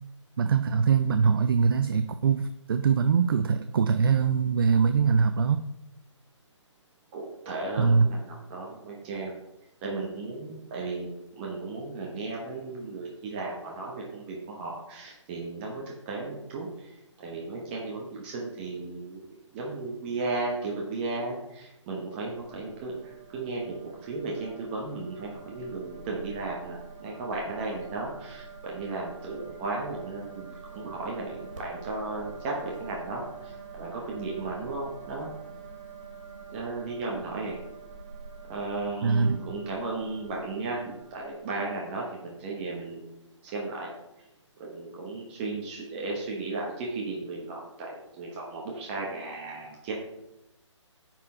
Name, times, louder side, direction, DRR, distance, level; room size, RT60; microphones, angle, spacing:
voice 1, 0.4-5.6 7.8-8.1 39.0-39.4, right 6 dB, 45° right, 10 dB, 0.4 m, -23 dB
voice 2, 7.1-9.3 9.8-19.3 19.5-35.3 36.5-37.6 38.5-43.1 43.4-43.9 44.6-49.9, right 3 dB, 20° right, -3 dB, 1.1 m, -35 dB
sound 1, 22.2-41.4, right 5 dB, 75° right, 2.5 m, -46 dB
9.8 x 4.4 x 4.3 m, 0.93 s
hypercardioid pair, 155°, 16 cm